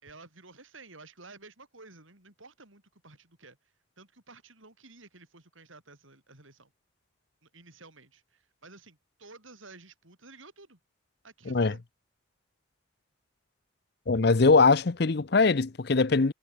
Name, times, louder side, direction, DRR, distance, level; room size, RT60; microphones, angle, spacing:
voice 1, 0.0-3.6 4.0-6.7 7.4-10.8 11.2-11.8 14.1-14.3, right 3 dB, 85° right, 7.3 m, -52 dB
voice 2, 14.1-16.3, left 4 dB, 55° left, 0.7 m, -22 dB
head